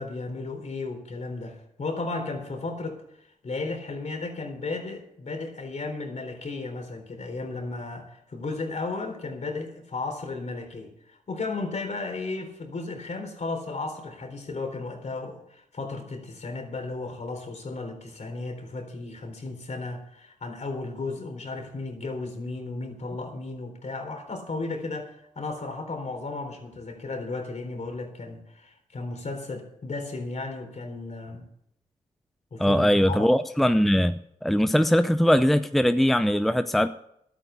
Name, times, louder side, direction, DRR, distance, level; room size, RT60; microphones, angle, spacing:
voice 1, 0.0-3.0 3.4-31.5 32.5-33.3, left 3 dB, 55° left, 4 dB, 3.9 m, -34 dB
voice 2, 32.6-36.9, equal, ahead, 11 dB, 0.7 m, -21 dB
12.0 x 9.3 x 8.3 m, 0.76 s
supercardioid pair, 45°, 14 cm